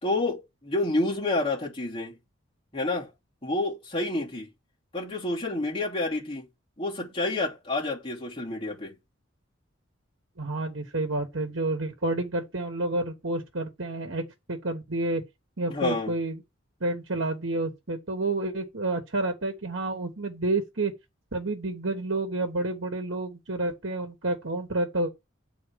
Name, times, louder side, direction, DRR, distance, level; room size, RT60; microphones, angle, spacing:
voice 1, 0.0-2.2 2.7-3.1 3.4-4.5 4.9-6.5 6.8-9.0 15.7-16.1, left 2 dB, 25° left, 3.0 m, -29 dB
voice 2, 10.4-14.2 14.5-15.2 15.6-16.4 16.8-20.9 21.3-25.1, right 2 dB, 75° right, 1.3 m, -29 dB
8.5 x 4.1 x 5.1 m
head